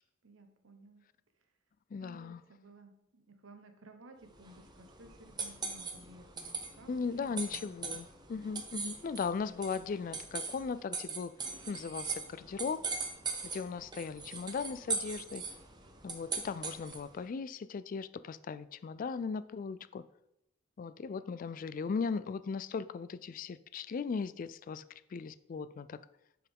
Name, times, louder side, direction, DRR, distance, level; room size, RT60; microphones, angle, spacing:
voice 1, 0.2-1.1 2.0-7.9, right 1 dB, 90° right, 6 dB, 0.9 m, -56 dB
voice 2, 1.9-2.4 6.9-11.3 11.7-12.8 13.4-15.4 16.0-20.0 20.8-24.8 25.1-26.0, left 5 dB, 45° left, 15 dB, 0.3 m, -38 dB
sound 1, 4.3-17.2, right 4 dB, 20° right, 0.7 m, -41 dB
9.7 x 4.6 x 3.6 m, 0.83 s
head